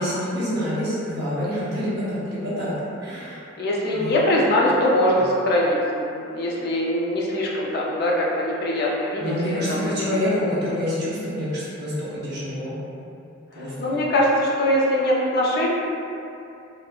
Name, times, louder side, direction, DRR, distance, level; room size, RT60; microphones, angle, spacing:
voice 1, 0.0-2.7 3.0-3.4 3.9-4.1 9.2-12.8 13.5-14.0, left 1 dB, 55° right, -10 dB, 0.8 m, -27 dB
voice 2, 3.6-9.9 13.6-15.7, left 1 dB, 55° left, -3 dB, 0.4 m, -22 dB
2.9 x 2.1 x 2.3 m, 2.7 s
head